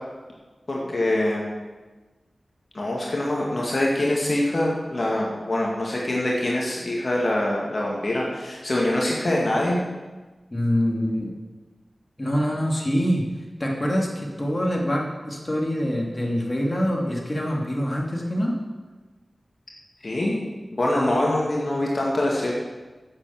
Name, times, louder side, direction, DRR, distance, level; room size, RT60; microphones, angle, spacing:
voice 1, 0.7-1.5 2.7-9.8 20.0-20.4 20.7-22.5, left 1 dB, 55° left, -3 dB, 2.1 m, -24 dB
voice 2, 10.5-11.3 12.2-13.3 13.6-18.6, equal, 30° left, -1 dB, 2.6 m, -25 dB
9.5 x 7.3 x 7.4 m, 1.3 s
cardioid pair, 40°, 0 cm